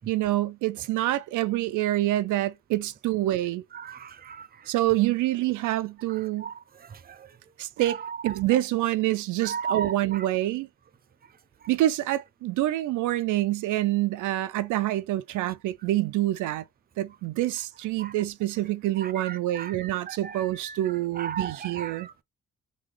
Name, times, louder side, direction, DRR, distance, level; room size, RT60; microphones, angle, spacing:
voice 1, 0.1-3.6 4.7-6.5 7.6-10.7 11.7-16.6 17.0-22.1, right 15 dB, 80° right, 0.5 m, -26 dB
voice 2, 3.8-4.5 6.4-6.5 9.4-9.9 18.0-18.1 19.0-20.8 21.2-22.2, right 7 dB, 30° right, 0.6 m, -35 dB
3.7 x 2.3 x 3.2 m
cardioid pair, 90°, 30 cm